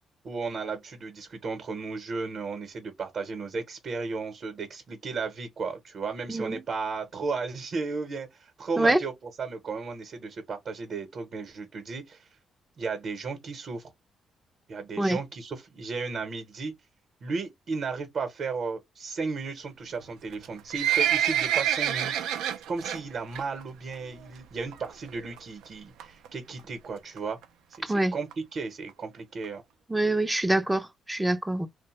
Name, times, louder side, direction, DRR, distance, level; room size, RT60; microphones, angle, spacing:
voice 1, 0.2-9.1 9.4-12.3 12.8-13.9 14.7-16.7 17.2-22.1 22.7-27.4 27.7-29.6, right 4 dB, 50° right, 0.8 m, -34 dB
Livestock farm animals working animals, 20.3-23.0 23.3-23.6 23.9-24.0 24.7-24.8 25.1-25.2 25.4-25.5 26.0-26.3 26.8-26.9 27.2-27.3 27.4-27.5 27.7-27.8 28.3-28.4 28.9-29.0 29.4-29.5, right 10 dB, 90° right, 0.4 m, -26 dB
voice 2, 29.9-31.7, right 1 dB, 10° right, 0.4 m, -25 dB
2.7 x 2.1 x 3.0 m
cardioid pair, 90°, 0 cm